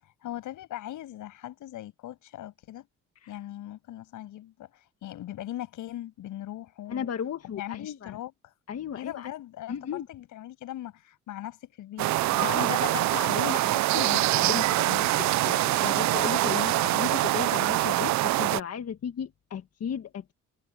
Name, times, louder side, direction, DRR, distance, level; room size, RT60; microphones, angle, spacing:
voice 1, 0.0-2.9 3.3-7.1 7.4-8.3 8.9-12.1, left 13 dB, 85° left, 7.7 m, -40 dB
voice 2, 6.9-8.2 8.7-9.3 9.7-10.1 12.3-20.3, left 8 dB, 55° left, 1.6 m, -35 dB
sound 1, 12.0-18.6, right 17 dB, 65° right, 0.4 m, -24 dB
cardioid pair, 90°, 30 cm